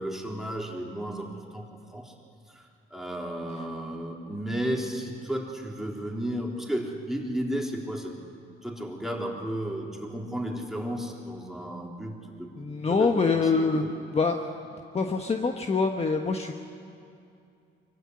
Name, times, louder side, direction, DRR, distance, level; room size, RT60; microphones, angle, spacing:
voice 1, 0.0-2.1 2.5-2.6 2.9-8.2 8.6-12.5 12.9-13.9, right 1 dB, ahead, -1 dB, 3.8 m, -33 dB
voice 2, 12.6-14.4 14.9-16.5, left 4 dB, 30° left, 4 dB, 1.3 m, -25 dB
24.0 x 15.5 x 9.8 m, 2.5 s
cardioid pair, 90°, 20 cm